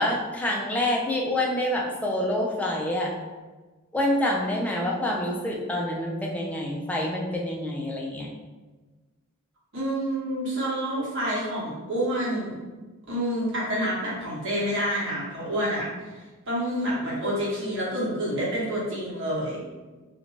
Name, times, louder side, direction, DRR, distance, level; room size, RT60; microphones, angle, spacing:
voice 1, 0.0-3.1 3.9-8.3, left 1 dB, 5° left, -2 dB, 0.3 m, -27 dB
voice 2, 9.7-12.5 13.1-15.9 16.5-19.6, equal, 60° right, -5 dB, 0.9 m, -28 dB
2.5 x 2.1 x 3.0 m, 1.3 s
head